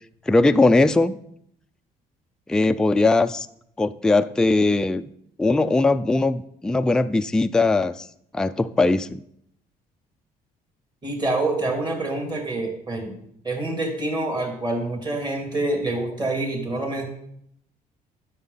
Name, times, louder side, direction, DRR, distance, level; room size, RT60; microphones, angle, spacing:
voice 1, 0.3-1.2 2.5-3.5 3.8-5.1 5.4-8.1 8.3-9.2, left 2 dB, 5° left, 9 dB, 0.3 m, -20 dB
voice 2, 11.0-13.1 13.4-17.0, right 2 dB, 25° right, 1 dB, 3.1 m, -26 dB
9.7 x 6.6 x 5.5 m, 0.72 s
cardioid pair, 110°, 17 cm